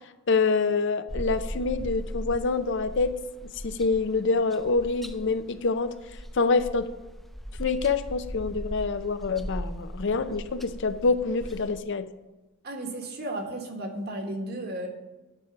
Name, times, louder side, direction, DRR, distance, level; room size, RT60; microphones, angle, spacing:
voice 1, 0.3-3.2 3.4-5.9 6.3-6.9 7.6-12.1, left 4 dB, 60° left, 11 dB, 0.5 m, -26 dB
sound 1, 1.1-11.8, equal, ahead, 0.3 m, -38 dB
voice 2, 12.6-14.9, right 1 dB, 50° right, 3 dB, 1.4 m, -34 dB
9.9 x 4.6 x 7.1 m, 1.1 s
head